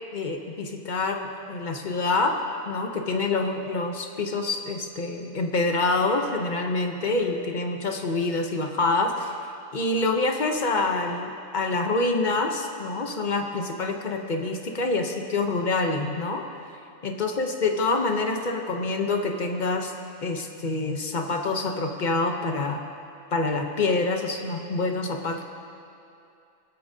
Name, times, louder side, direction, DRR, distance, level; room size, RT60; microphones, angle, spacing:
voice 1, 0.1-2.4 2.7-9.4 9.7-16.4 17.0-19.9 20.2-22.8 23.3-25.4, left 3 dB, 40° left, 4 dB, 0.8 m, -26 dB
24.0 x 8.5 x 2.7 m, 2.5 s
omnidirectional pair, 1.4 m